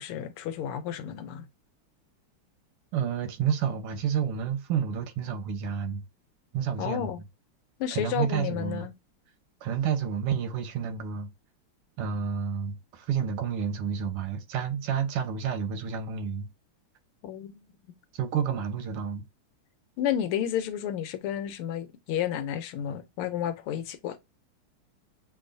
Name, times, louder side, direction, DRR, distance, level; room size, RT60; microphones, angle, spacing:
voice 1, 0.0-1.5 6.8-7.2 7.8-8.9 17.2-17.6 20.0-24.2, left 10 dB, 80° left, 1.5 m, -31 dB
voice 2, 2.9-6.0 6.5-7.1 7.9-8.9 9.6-11.3 12.0-16.5 18.1-19.3, right 7 dB, 90° right, 1.9 m, -30 dB
7.0 x 2.6 x 2.6 m
omnidirectional pair, 2.4 m